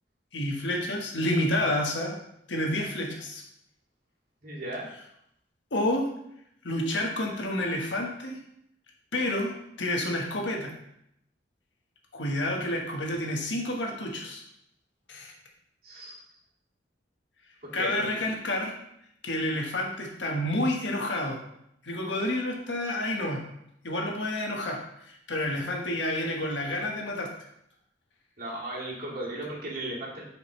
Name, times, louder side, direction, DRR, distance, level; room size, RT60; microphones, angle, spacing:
voice 1, 0.3-2.2 2.5-3.4 5.7-6.1 6.6-8.4 9.1-10.7 12.1-14.4 15.1-15.3 17.7-18.7 19.2-21.4 21.8-23.4 23.8-24.8 25.1-27.3, left 1 dB, 85° left, 0 dB, 1.4 m, -29 dB
voice 2, 4.4-4.9 15.8-16.2 17.6-18.2 28.4-30.2, right 1 dB, 55° right, -5 dB, 2.3 m, -36 dB
7.8 x 5.1 x 3.2 m, 0.76 s
head